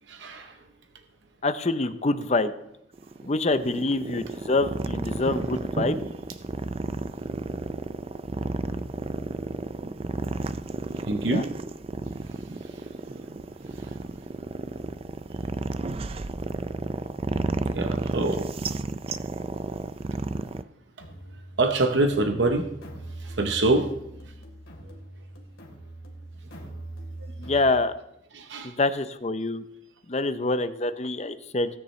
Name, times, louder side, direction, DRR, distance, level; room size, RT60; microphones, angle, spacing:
voice 1, 0.1-0.6 7.3-7.4 8.6-8.8 11.1-11.5 12.0-13.2 13.7-14.1 15.3-15.4 17.6-18.5 19.6-19.7 20.1-20.2 21.6-22.8 23.1-23.9 24.2-24.3 24.8-24.9 27.2-27.3 28.3-28.8, right 2 dB, 65° right, 6 dB, 0.9 m, -27 dB
voice 2, 1.4-2.5 3.2-6.0 11.2-11.4 27.4-27.9 28.6-29.6 30.1-31.7, left 2 dB, 35° left, 11 dB, 0.7 m, -26 dB
sound 1, 2.9-20.6, right 2 dB, 30° right, 0.4 m, -32 dB
sound 2, 21.0-27.8, right 1 dB, 85° left, 2.7 m, -42 dB
17.5 x 9.7 x 3.2 m, 0.79 s
head